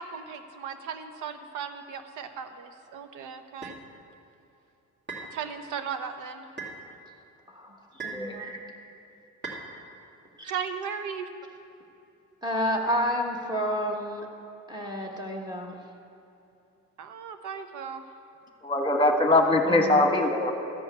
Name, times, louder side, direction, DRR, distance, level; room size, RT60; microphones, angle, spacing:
voice 1, 0.0-3.8 5.3-6.5 10.4-11.3 17.0-18.0, right 7 dB, 85° right, 8 dB, 0.9 m, -36 dB
sound 1, 3.6-3.8 5.1-5.3 6.6-6.8 8.0-8.3 9.4-9.7, right 4 dB, 35° right, 2.1 m, -37 dB
voice 2, 7.5-8.6 10.4-10.5 12.4-14.3 14.7-15.8 19.6-20.0, equal, 15° right, 0 dB, 1.4 m, -30 dB
voice 3, 18.6-20.5, left 2 dB, 20° left, 3 dB, 1.3 m, -22 dB
13.0 x 5.3 x 8.1 m, 2.7 s
cardioid pair, 90°, 30 cm